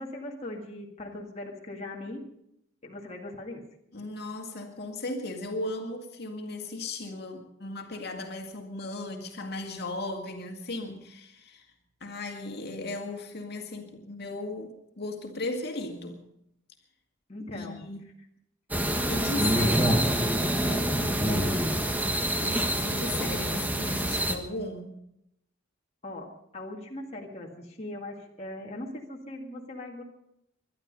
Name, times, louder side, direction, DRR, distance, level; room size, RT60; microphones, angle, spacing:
voice 1, 0.0-2.2 2.8-3.6 17.3-17.8 19.5-20.0 21.0-21.8 26.0-30.0, left 2 dB, 30° left, 2.0 m, -40 dB
voice 2, 3.9-11.7 12.0-16.2 17.5-18.0 19.1-19.8 20.6-21.2 22.4-25.0, left 2 dB, 50° left, 2.2 m, -36 dB
sound 1, 18.7-24.4, right 1 dB, 10° right, 1.3 m, -26 dB
22.5 x 11.5 x 5.4 m
head